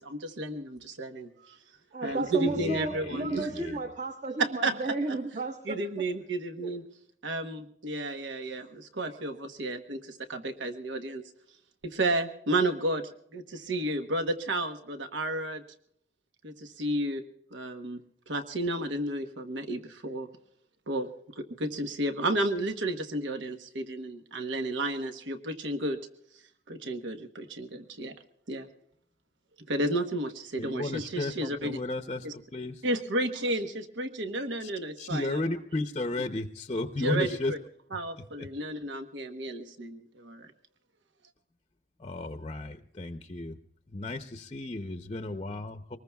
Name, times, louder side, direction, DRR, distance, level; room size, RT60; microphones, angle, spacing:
voice 1, 0.0-1.6 2.0-3.8 4.4-4.9 5.6-6.8 7.2-11.2 11.8-13.0 13.3-15.6 16.4-17.2 17.5-18.0 18.3-20.3 20.9-21.1 21.4-26.0 26.7-28.1 28.5-28.7 29.7-31.8 32.2-32.3 32.8-35.4 37.0-37.6 37.9-40.5, right 1 dB, 80° right, 7 dB, 1.1 m, -32 dB
voice 2, 1.9-5.8 6.6-6.7, right 3 dB, 45° right, 4 dB, 1.2 m, -33 dB
voice 3, 2.5-3.8 30.6-32.9 34.6-34.7 35.0-37.5 38.2-38.5 42.0-43.6 43.9-46.0, left 2 dB, 30° left, 7 dB, 0.6 m, -34 dB
24.5 x 20.0 x 2.3 m, 0.70 s
head